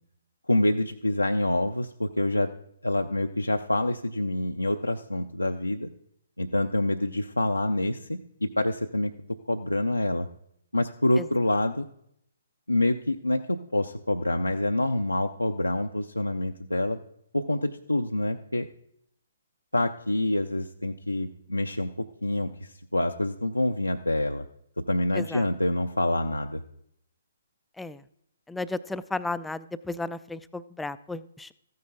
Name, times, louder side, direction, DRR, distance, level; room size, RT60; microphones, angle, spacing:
voice 1, 0.5-2.5 2.8-5.9 6.4-9.1 9.5-10.3 10.7-11.9 12.7-17.0 17.3-18.7 19.7-21.9 22.2-24.5 24.9-26.6, left 1 dB, 85° left, 4 dB, 0.5 m, -26 dB
voice 2, 28.5-31.5, left 2 dB, 5° left, 14 dB, 0.3 m, -34 dB
14.0 x 9.4 x 3.9 m, 0.72 s
figure-of-eight pair, 130°, 0 cm